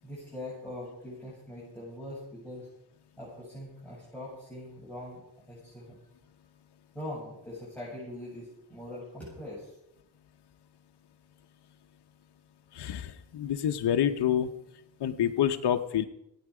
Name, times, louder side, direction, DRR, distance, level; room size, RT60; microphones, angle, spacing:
voice 1, 0.0-2.7 3.2-5.2 5.5-6.0 6.9-9.7, left 1 dB, 5° left, -7 dB, 7.5 m, -42 dB
voice 2, 12.7-14.5 15.0-16.1, left 10 dB, 75° left, 5 dB, 0.9 m, -27 dB
25.5 x 9.2 x 4.9 m, 0.81 s
cardioid pair, 80°, 41 cm